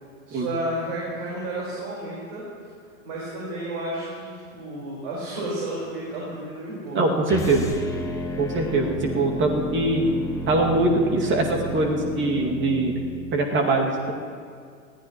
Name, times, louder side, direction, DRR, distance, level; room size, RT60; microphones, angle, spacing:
voice 1, 0.3-2.4 3.0-7.1, right 1 dB, 50° right, -6 dB, 4.6 m, -32 dB
voice 2, 7.0-7.7 8.4-10.0 10.5-12.9 13.3-14.1, right 2 dB, 30° right, 1 dB, 2.3 m, -22 dB
sound 1, 7.3-13.4, equal, 5° left, 1.6 m, -32 dB
20.5 x 15.0 x 3.1 m, 2.2 s
hypercardioid pair, 100°, 41 cm